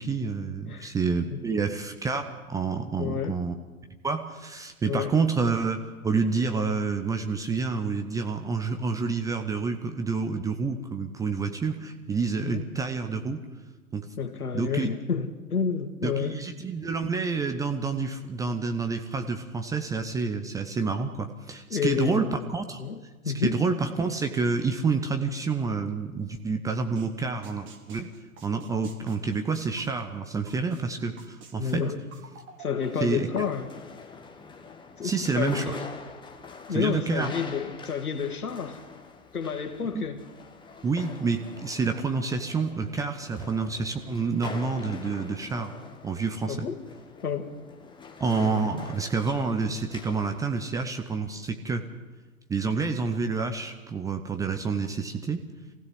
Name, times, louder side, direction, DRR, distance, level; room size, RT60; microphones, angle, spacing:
voice 1, 0.0-3.5 4.0-13.4 13.9-14.1 14.5-14.9 16.0-22.8 23.3-28.1 28.4-31.8 33.0-33.5 35.0-35.8 36.7-37.3 39.9-40.1 40.8-45.7 46.0-46.7 48.2-51.8 52.5-55.4, right 4 dB, 10° right, 6 dB, 0.6 m, -28 dB
voice 2, 0.6-0.9 1.3-1.4 3.0-3.4 4.9-5.1 12.4-12.6 14.2-16.4 21.7-22.5 22.8-23.0 23.2-23.6 31.6-32.0 32.6-33.7 35.0-35.8 36.7-38.8 39.3-40.2 46.5-46.8 47.2-47.5, left 6 dB, 75° left, 8 dB, 2.0 m, -30 dB
sound 1, 27.0-27.1 27.4-30.8 31.2-33.5, right 5 dB, 25° right, 2.6 m, -48 dB
sound 2, 32.8-50.6, left 4 dB, 10° left, 1.5 m, -44 dB
23.5 x 16.0 x 7.7 m, 1.3 s
figure-of-eight pair, 110°, 45 cm